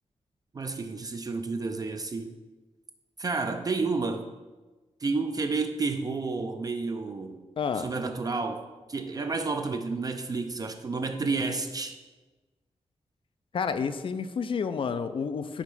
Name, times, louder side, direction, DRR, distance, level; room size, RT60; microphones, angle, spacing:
voice 1, 0.5-2.3 3.2-4.3 5.0-7.4 7.8-12.0, right 3 dB, 35° right, 6 dB, 0.4 m, -30 dB
voice 2, 7.6-7.9 13.5-15.6, left 6 dB, 50° left, 11 dB, 0.4 m, -30 dB
4.9 x 4.5 x 5.4 m, 1.2 s
wide cardioid pair, 130°, 12 cm